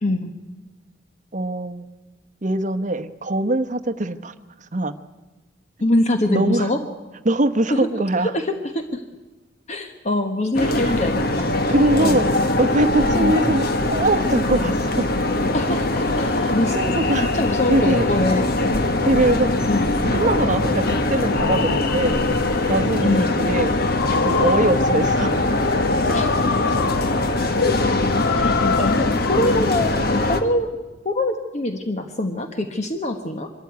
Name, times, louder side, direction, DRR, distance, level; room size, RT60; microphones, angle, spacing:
voice 1, 0.0-0.3 5.8-6.8 7.7-7.9 8.2-9.0 9.7-11.7 12.0-12.2 13.1-13.4 15.5-16.8 17.2-18.5 19.6-19.9 23.0-23.3 26.1-26.3 26.7-26.8 28.6-30.7 31.0-33.5, left 1 dB, 35° left, 6 dB, 1.2 m, -24 dB
voice 2, 1.3-1.9 2.4-4.3 4.7-4.9 6.3-6.7 7.2-8.3 10.8-10.9 11.7-12.3 12.6-15.1 16.4-17.3 17.7-18.1 19.1-19.5 19.9-22.2 22.7-23.8 24.2-25.4 28.4-28.6, right 1 dB, 40° right, 10 dB, 1.0 m, -22 dB
sound 1, 10.5-30.4, left 2 dB, 55° left, 1.5 m, -21 dB
sound 2, 20.2-29.6, left 5 dB, 80° left, 1.1 m, -28 dB
24.0 x 13.5 x 9.4 m, 1.2 s
head